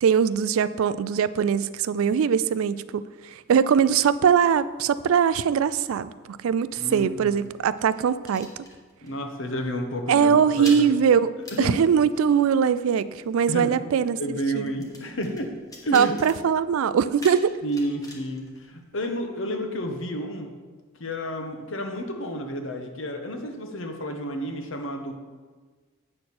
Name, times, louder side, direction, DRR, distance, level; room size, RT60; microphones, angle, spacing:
voice 1, 0.0-3.1 3.5-8.5 10.1-11.3 11.6-14.7 15.9-17.5, right 7 dB, 75° right, 15 dB, 0.3 m, -21 dB
sound 1, 5.9-9.2 9.5-9.7 10.0-19.4, left 1 dB, 15° left, 1.1 m, -46 dB
voice 2, 6.8-7.3 9.0-10.3 10.6-10.9 11.5-11.9 13.5-13.7 14.2-15.5 15.8-16.1 17.6-20.5 21.0-25.1, equal, 60° left, 4 dB, 1.0 m, -31 dB
8.8 x 6.6 x 4.3 m, 1.4 s
head